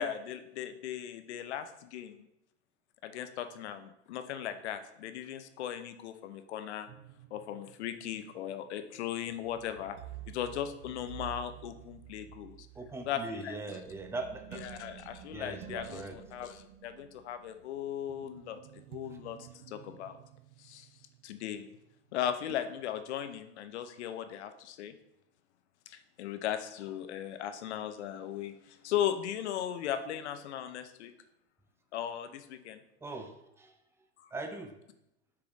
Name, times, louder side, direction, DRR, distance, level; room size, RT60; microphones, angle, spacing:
voice 1, 0.0-2.3 3.0-6.9 7.3-10.0 10.3-12.7 13.1-13.8 14.6-20.2 20.6-20.9 21.2-21.7 22.1-24.9 25.9-31.1 31.9-32.8 34.2-34.3, left 10 dB, 70° left, 10 dB, 0.8 m, -37 dB
sound 1, 6.9-22.1 22.5-22.6, right 14 dB, 50° right, 0.5 m, -51 dB
voice 2, 12.7-14.6 15.3-16.2 33.0-33.7 34.3-34.7, right 3 dB, 5° right, 6 dB, 0.6 m, -40 dB
6.9 x 4.9 x 3.1 m, 0.83 s
hypercardioid pair, 110°, 35 cm